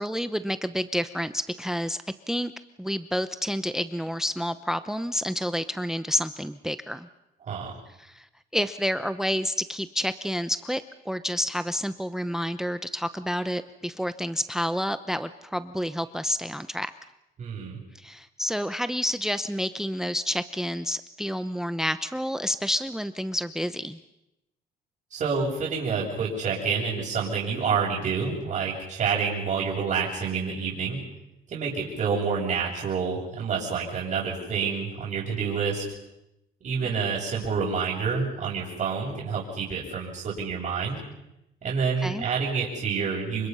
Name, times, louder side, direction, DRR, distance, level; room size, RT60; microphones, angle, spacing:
voice 1, 0.0-2.0 2.3-2.5 2.8-7.1 8.0-8.3 8.5-16.9 18.0-24.0 42.0-42.2, equal, 5° right, 12 dB, 0.8 m, -29 dB
voice 2, 7.4-7.8 17.4-17.8 25.1-31.0 31.5-35.8 36.6-41.0 41.6-43.5, right 5 dB, 45° right, -7 dB, 7.8 m, -28 dB
29.5 x 25.0 x 5.6 m, 0.88 s
cardioid pair, 110°, 17 cm